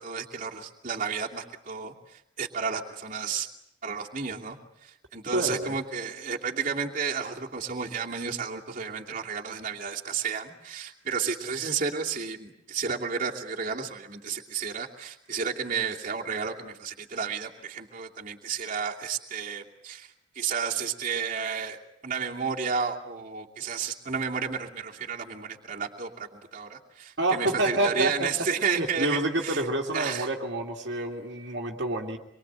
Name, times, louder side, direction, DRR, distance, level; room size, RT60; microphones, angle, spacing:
voice 1, 0.0-3.5 3.8-4.6 4.8-21.8 22.0-29.6 29.9-30.3, right 6 dB, 40° right, -2 dB, 2.7 m, -32 dB
voice 2, 5.3-5.7 27.2-28.3 28.7-32.2, right 1 dB, 60° right, 1 dB, 2.5 m, -28 dB
26.5 x 23.0 x 9.0 m, 0.77 s
head